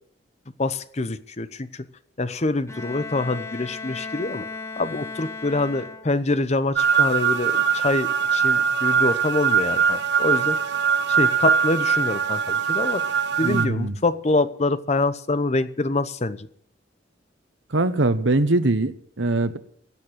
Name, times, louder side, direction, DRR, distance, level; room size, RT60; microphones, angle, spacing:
voice 1, 0.6-1.9 2.2-4.5 4.8-10.6 11.1-16.5, left 2 dB, 35° left, 14 dB, 0.8 m, -25 dB
Bowed string instrument, 2.7-6.4, left 4 dB, 15° left, 1.6 m, -36 dB
sound 1, 6.8-13.7, right 7 dB, 65° right, 1.1 m, -21 dB
voice 2, 13.4-14.0 17.7-19.6, right 2 dB, 85° right, 11 dB, 1.2 m, -22 dB
16.5 x 7.4 x 9.7 m, 0.62 s
head